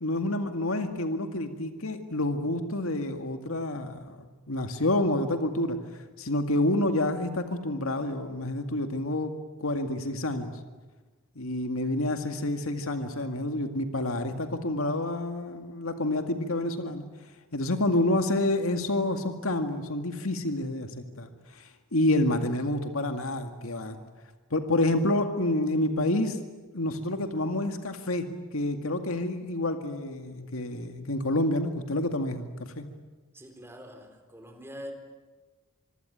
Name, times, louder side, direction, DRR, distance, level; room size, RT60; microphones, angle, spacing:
voice 1, 0.0-5.8 6.2-9.3 9.6-10.5 11.4-17.1 17.5-20.9 21.2-21.3 21.6-21.7 21.9-24.0 24.5-26.4 26.7-28.3 28.5-32.5 32.8-32.9, left 1 dB, 85° left, 6 dB, 2.1 m, -28 dB
voice 2, 33.3-34.9, equal, 10° right, 4 dB, 4.2 m, -44 dB
25.5 x 24.0 x 9.2 m, 1.3 s
head